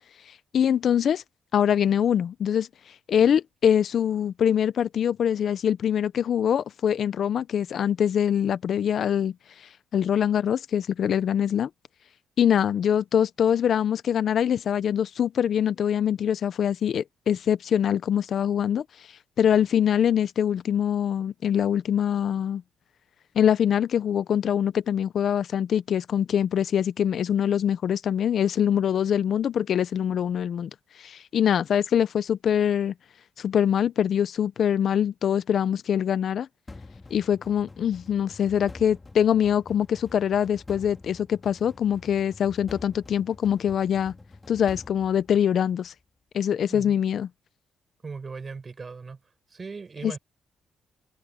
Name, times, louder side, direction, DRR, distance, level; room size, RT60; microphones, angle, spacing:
voice 1, 0.3-1.2 1.5-2.7 3.1-11.7 12.4-18.8 19.4-22.6 23.3-30.7 31.0-32.9 33.4-36.5 37.1-44.1 44.5-45.9 46.3-47.3 50.0-50.2, left 9 dB, 60° left, 0.7 m, -24 dB
sound 1, 36.7-45.9, left 3 dB, 20° left, 3.1 m, -47 dB
voice 2, 48.0-49.2 49.5-50.2, right 4 dB, 35° right, 7.8 m, -38 dB
cardioid pair, 90°, 0 cm